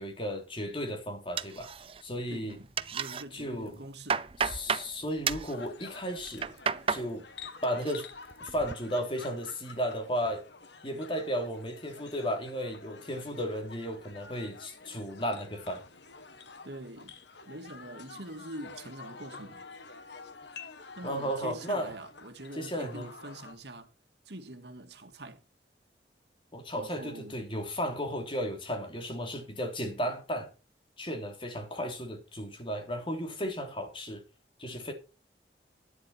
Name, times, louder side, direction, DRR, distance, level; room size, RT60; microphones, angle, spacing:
voice 1, 0.0-1.7 2.0-2.6 3.3-3.8 4.4-6.5 6.9-7.3 7.6-8.1 8.4-10.4 10.8-15.8 21.0-21.9 22.5-23.1 26.5-30.5 31.0-34.2 34.6-34.9, equal, 30° left, 3.3 m, -34 dB
sound 1, 1.4-2.2 2.5-3.2 3.7-4.9 5.2-5.5 6.2-7.1 7.4-7.9 8.3-8.7, right 6 dB, 30° right, 0.6 m, -32 dB
voice 2, 2.3-4.3 16.6-17.2 17.5-19.6 21.0-23.9 24.3-25.4 26.7-27.4, right 1 dB, 70° right, 2.0 m, -44 dB
sound 2, 5.5-23.5, left 4 dB, 80° left, 1.9 m, -49 dB
12.0 x 10.0 x 4.4 m
head